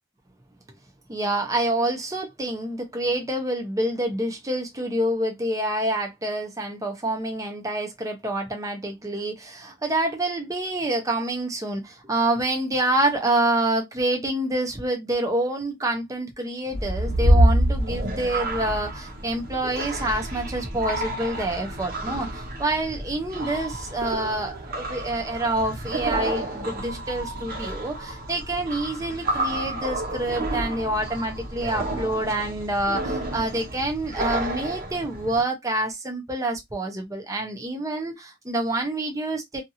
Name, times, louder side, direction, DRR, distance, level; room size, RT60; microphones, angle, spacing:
voice 1, 1.1-39.6, right 1 dB, 15° right, 0.6 m, -27 dB
sound 1, 16.7-35.4, right 1 dB, 50° right, 0.9 m, -28 dB
2.6 x 2.5 x 2.7 m
head